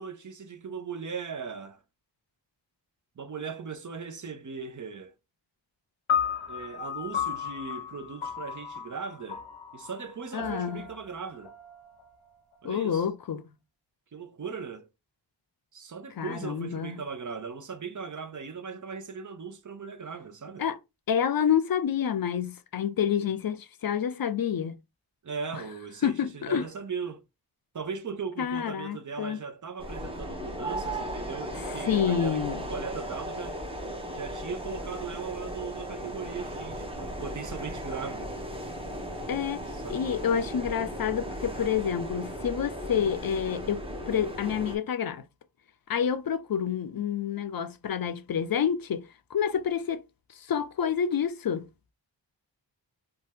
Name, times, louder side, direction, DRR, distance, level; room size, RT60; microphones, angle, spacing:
voice 1, 0.0-1.8 3.2-5.1 6.5-9.5 9.7-11.5 12.6-13.1 14.1-14.9 15.7-20.6 25.2-27.2 27.7-32.4 32.7-33.6 34.1-38.3 39.7-40.1, right 5 dB, 40° right, 0.6 m, -38 dB
sound 1, 6.1-12.5, left 7 dB, 85° left, 0.8 m, -34 dB
voice 2, 10.3-10.8 12.6-13.5 16.2-17.0 20.6-20.8 21.1-24.8 25.5-25.6 26.0-26.7 28.4-29.4 31.5-32.6 39.3-45.2 45.9-49.1 49.3-50.0 50.4-51.7, left 8 dB, 50° left, 0.5 m, -28 dB
sound 2, 29.8-44.8, equal, 10° right, 0.8 m, -36 dB
2.7 x 2.2 x 3.2 m
wide cardioid pair, 60°, 46 cm